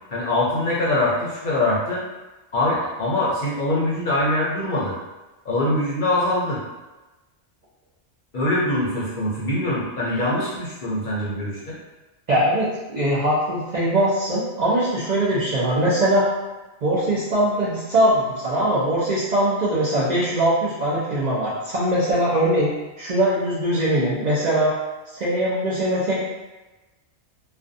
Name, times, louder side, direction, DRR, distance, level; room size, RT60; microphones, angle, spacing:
voice 1, 0.1-2.0 2.5-4.9 5.4-6.6 8.3-11.8, left 1 dB, 55° left, -6 dB, 0.6 m, -23 dB
voice 2, 12.3-16.2 16.8-22.7 23.0-24.7 25.1-26.2, right 1 dB, 50° right, -8 dB, 0.5 m, -21 dB
2.4 x 2.2 x 2.5 m, 1.1 s
omnidirectional pair, 1.2 m